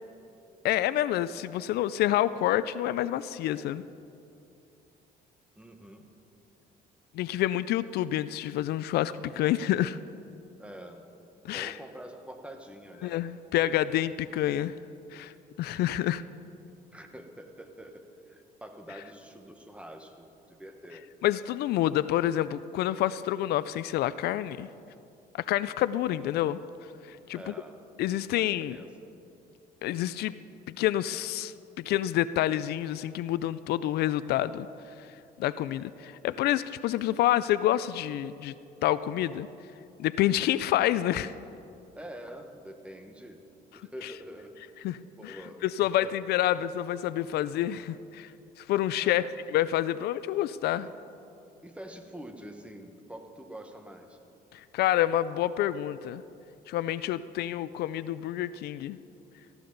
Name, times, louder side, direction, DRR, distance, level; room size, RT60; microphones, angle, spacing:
voice 1, 0.6-3.8 7.1-10.0 11.4-11.7 13.0-14.7 15.1-15.3 15.6-16.2 21.2-24.7 25.3-26.6 27.1-27.5 28.0-28.8 29.8-30.4 30.8-34.7 35.0-35.1 35.4-38.5 38.8-39.5 40.0-41.3 44.0-44.1 44.8-48.3 48.6-49.2 49.5-50.9 54.5-56.2 56.7-59.0, left 13 dB, 70° left, 15 dB, 0.4 m, -28 dB
voice 2, 5.6-6.1 10.6-11.0 11.5-13.2 16.9-21.1 27.3-27.8 28.4-28.9 41.9-43.4 43.7-44.6 45.2-45.6 46.0-46.2 46.5-46.6 49.0-49.3 51.6-54.2, right 1 dB, 5° right, 5 dB, 1.4 m, -45 dB
18.5 x 15.0 x 4.0 m, 2.7 s
cardioid pair, 110°, 17 cm